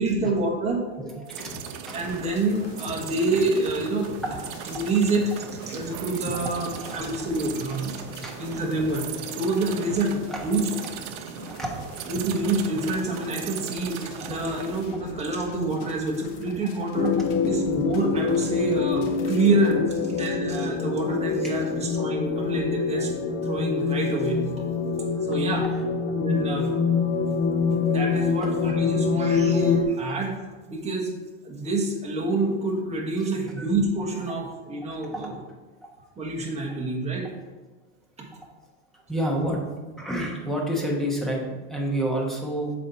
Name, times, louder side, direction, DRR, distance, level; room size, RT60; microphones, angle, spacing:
voice 1, 0.0-0.8 1.9-4.1 4.7-5.3 5.7-8.0 8.4-10.6 12.1-17.2 17.4-23.1 23.4-24.4 25.3-25.6 26.1-26.7 27.8-30.4 30.7-31.1 31.4-35.3 36.2-37.4, right 2 dB, 15° right, -2 dB, 1.3 m, -27 dB
voice 2, 1.0-1.6 1.9-2.0 6.3-6.4 6.7-7.6 8.2-8.4 10.3-10.4 11.4-11.7 14.2-14.3 16.6-16.9 25.0-25.1 25.6-25.8 33.2-33.3 33.6-33.7 35.1-35.3 38.9-39.6 40.0-42.7, right 1 dB, ahead, -2 dB, 1.1 m, -30 dB
sound 1, 1.3-14.9, right 9 dB, 55° right, 0.6 m, -38 dB
sound 2, 1.4-19.8, left 4 dB, 45° left, 1.0 m, -45 dB
sound 3, 16.9-29.8, left 5 dB, 25° left, 0.4 m, -25 dB
7.3 x 4.2 x 4.2 m, 1.2 s
supercardioid pair, 135°, 44 cm